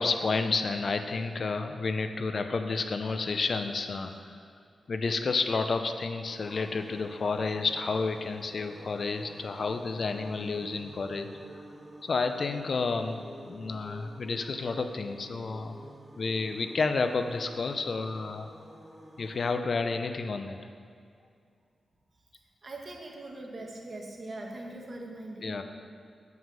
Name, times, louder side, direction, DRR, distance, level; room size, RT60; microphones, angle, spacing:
voice 1, 0.0-4.1 4.9-11.3 12.0-15.8 16.2-18.5 19.2-20.6 25.4-25.6, left 4 dB, 60° left, 7 dB, 0.6 m, -30 dB
sound 1, 6.3-19.5, equal, 15° right, 1.1 m, -49 dB
voice 2, 22.6-25.6, right 2 dB, 50° right, 0 dB, 1.4 m, -41 dB
7.2 x 6.0 x 5.6 m, 2.3 s
cardioid pair, 70°, 0 cm